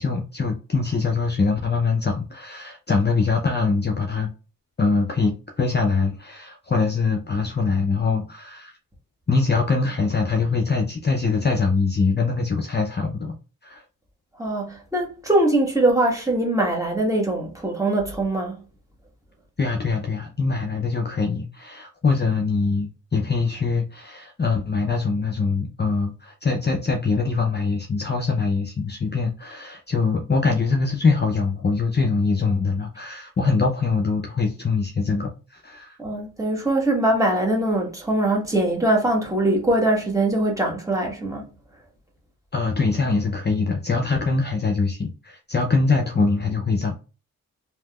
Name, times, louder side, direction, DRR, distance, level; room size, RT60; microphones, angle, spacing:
voice 1, 0.0-4.3 4.8-8.7 9.3-13.3 13.6-13.8 19.6-36.0 42.5-47.0, left 4 dB, 30° left, 0.6 m, -23 dB
voice 2, 14.4-18.5 36.0-41.5, right 1 dB, 10° right, 1.4 m, -22 dB
3.3 x 2.7 x 2.3 m
cardioid pair, 55°, 34 cm